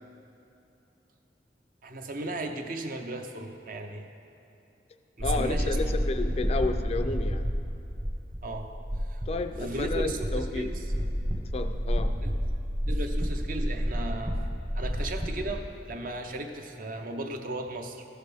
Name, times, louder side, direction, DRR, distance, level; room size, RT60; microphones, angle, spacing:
voice 1, 1.8-4.1 5.2-5.9 8.4-8.7 9.1-9.2 9.6-10.8 12.1-12.3 12.9-14.4 14.7-18.0, right 2 dB, 50° right, 5 dB, 0.7 m, -36 dB
voice 2, 5.2-7.5 9.3-10.7 11.5-12.2, left 3 dB, 35° left, 8 dB, 0.3 m, -31 dB
sound 1, 5.2-15.6, equal, 35° right, 1.2 m, -30 dB
14.0 x 6.5 x 3.4 m, 2.8 s
head